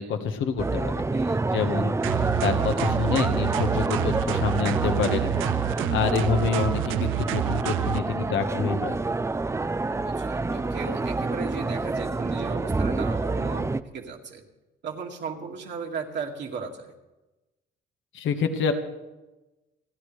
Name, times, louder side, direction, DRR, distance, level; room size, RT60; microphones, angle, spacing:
voice 1, 0.0-1.0 1.5-5.3 5.9-9.0 18.1-18.7, left 5 dB, 80° left, 6 dB, 1.5 m, -27 dB
sound 1, 0.6-13.8, right 3 dB, 15° right, 0.5 m, -28 dB
voice 2, 1.1-1.4 9.9-14.4 14.8-16.9, right 5 dB, 65° right, 0 dB, 2.2 m, -36 dB
sound 2, 2.0-8.0, right 16 dB, 85° right, 0.4 m, -28 dB
29.5 x 11.0 x 3.4 m, 1.1 s
cardioid pair, 90°, 20 cm